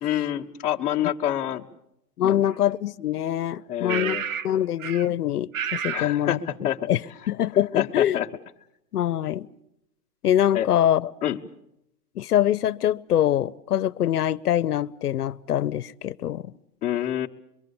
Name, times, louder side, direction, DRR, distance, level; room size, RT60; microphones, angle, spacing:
voice 1, 0.0-1.7 2.2-2.5 3.7-4.2 5.9-6.9 7.7-8.3 10.5-10.7 11.2-11.4 16.8-17.3, left 11 dB, 15° left, 1.1 m, -27 dB
voice 2, 2.2-4.2 4.4-6.4 6.9-7.0 7.3-8.2 8.9-9.5 10.2-11.1 12.2-16.5, left 11 dB, 70° left, 0.9 m, -24 dB
sound 1, 2.4-2.5 3.9-4.5 4.8-5.1 5.5-6.1, right 7 dB, 60° right, 0.9 m, -30 dB
25.0 x 23.5 x 7.1 m
hypercardioid pair, 155°, 47 cm